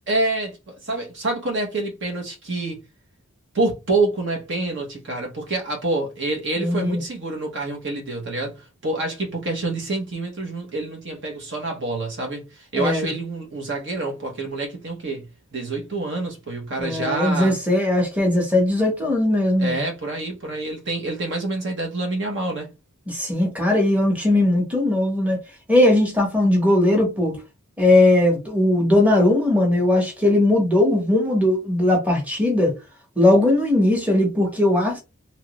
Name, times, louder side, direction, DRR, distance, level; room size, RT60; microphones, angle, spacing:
voice 1, 0.1-2.8 3.5-17.5 19.6-22.7, right 2 dB, 55° right, 1.0 m, -27 dB
voice 2, 6.6-7.0 12.8-13.1 16.8-19.8 23.1-25.4 25.7-27.4 27.8-32.7 33.2-35.0, left 1 dB, 5° right, 1.0 m, -19 dB
2.9 x 2.5 x 3.0 m
head